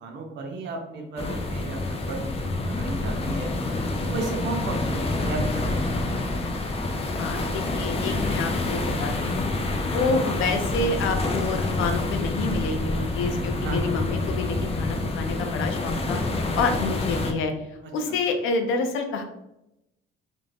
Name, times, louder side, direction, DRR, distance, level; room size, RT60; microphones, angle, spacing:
voice 1, 0.0-2.3 2.6-3.5 4.0-6.2 13.6-14.0 17.8-18.2, right 3 dB, 65° right, 1 dB, 0.5 m, -34 dB
sound 1, 1.2-17.3, left 2 dB, 30° left, 0.4 m, -27 dB
voice 2, 7.1-9.5 9.8-16.2 16.6-17.5 17.9-19.2, left 3 dB, 90° left, 5 dB, 0.5 m, -28 dB
2.4 x 2.1 x 3.2 m, 0.87 s
cardioid pair, 90°, 20 cm